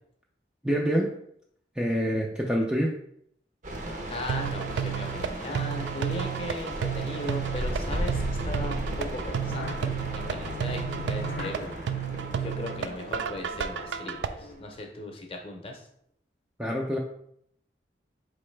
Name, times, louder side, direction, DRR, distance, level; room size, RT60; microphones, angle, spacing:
voice 1, 0.6-1.1 1.8-2.9 16.6-17.0, equal, 5° right, -2 dB, 0.4 m, -26 dB
sound 1, 3.6-14.5, right 1 dB, 45° right, 0.7 m, -35 dB
voice 2, 4.1-11.7 12.3-15.8, left 1 dB, 30° left, 2 dB, 0.7 m, -37 dB
sound 2, 4.3-14.3, right 8 dB, 90° right, 0.3 m, -32 dB
sound 3, 5.9-15.0, left 5 dB, 70° left, 0.4 m, -44 dB
4.6 x 3.1 x 3.2 m, 0.69 s
head